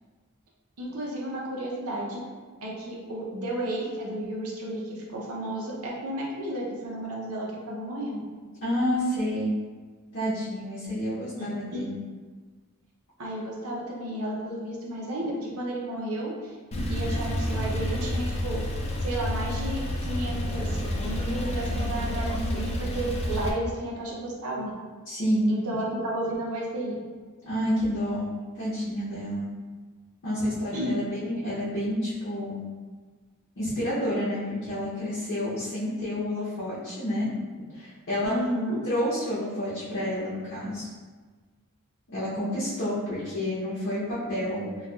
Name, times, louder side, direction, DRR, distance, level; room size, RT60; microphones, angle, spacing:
voice 1, 0.8-2.2 2.6-8.2 11.4-11.9 13.2-16.5 16.9-18.6 19.0-24.7 25.5-27.0 30.7-31.0 38.2-38.8, right 1 dB, 75° right, -3 dB, 0.7 m, -32 dB
voice 2, 8.6-9.5 10.1-12.0 25.1-25.6 27.4-28.3 28.5-29.5 30.2-32.6 33.6-37.3 37.7-38.3 38.9-40.9 42.1-44.9, equal, 55° left, -9 dB, 0.8 m, -29 dB
Male speech man speaking / Car / Idling, 16.7-23.5, left 1 dB, 30° left, 0.3 m, -29 dB
4.1 x 2.3 x 2.3 m, 1.4 s
head